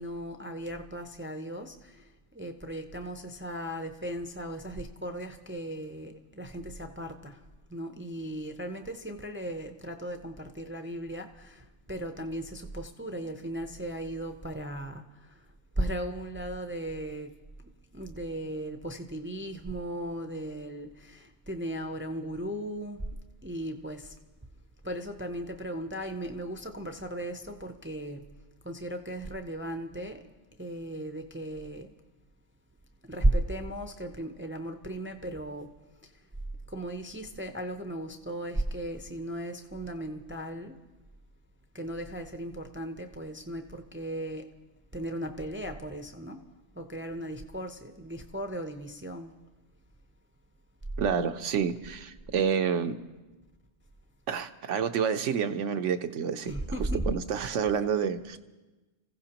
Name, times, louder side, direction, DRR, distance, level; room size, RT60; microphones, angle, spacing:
voice 1, 0.0-2.1 2.3-7.4 7.7-15.4 15.8-17.3 17.6-23.1 23.4-24.1 24.8-28.3 28.6-30.3 30.5-31.9 33.0-35.7 36.7-40.8 41.7-44.5 44.9-46.4 46.7-49.3 56.4-57.2, right 1 dB, 15° right, 6 dB, 0.5 m, -36 dB
voice 2, 51.0-52.9 54.3-56.5 57.1-58.4, right 7 dB, 85° right, 9 dB, 1.1 m, -28 dB
28.0 x 15.5 x 2.9 m, 1.2 s
omnidirectional pair, 1.2 m